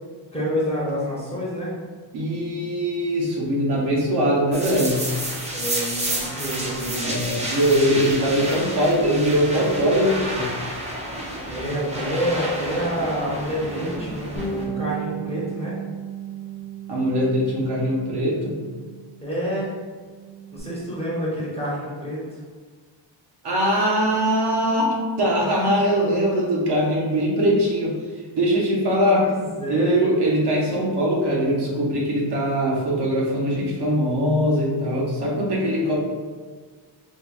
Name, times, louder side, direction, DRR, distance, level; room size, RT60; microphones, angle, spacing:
voice 1, 0.3-1.7 5.5-7.2 11.4-15.8 19.2-19.7 20.5-22.4 29.1-30.0, equal, 15° left, -7 dB, 0.7 m, -28 dB
voice 2, 2.1-5.1 7.0-10.5 16.9-18.6 23.4-28.0 28.3-29.3 29.7-36.0, equal, 60° right, -3 dB, 0.7 m, -21 dB
sound 1, 4.5-14.6, right 1 dB, 15° right, 0.3 m, -30 dB
Bass guitar, 14.4-19.1 19.4-20.6, right 6 dB, 65° left, 1.0 m, -35 dB
4.6 x 2.1 x 2.3 m, 1.5 s
wide cardioid pair, 170°, 47 cm